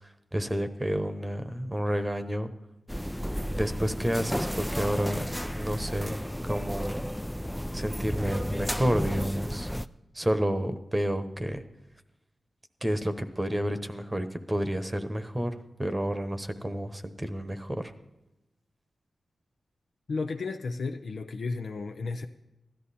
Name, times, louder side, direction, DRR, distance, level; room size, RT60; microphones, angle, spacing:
voice 1, 0.0-2.5 3.5-5.2 5.6-6.1 6.4-7.0 7.7-9.7 10.1-11.6 12.8-17.9, equal, 20° right, 9 dB, 1.1 m, -30 dB
sound 1, 2.9-9.9, equal, 5° left, 0.4 m, -33 dB
voice 2, 20.1-22.3, left 4 dB, 70° left, 4 dB, 0.7 m, -33 dB
15.5 x 12.0 x 4.2 m, 0.96 s
cardioid pair, 70°, 0 cm